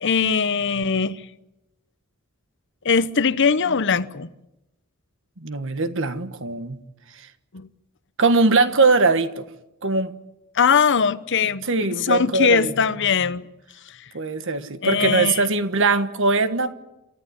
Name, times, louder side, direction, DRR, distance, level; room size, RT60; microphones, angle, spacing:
voice 1, 0.0-1.2 2.8-4.3 7.5-7.7 10.5-13.4 14.8-15.4, left 6 dB, 60° left, 0.9 m, -21 dB
voice 2, 5.4-6.8 8.2-9.4 9.8-10.1 11.6-12.7 14.1-16.7, right 3 dB, 65° right, 1.5 m, -21 dB
28.5 x 14.5 x 10.0 m
head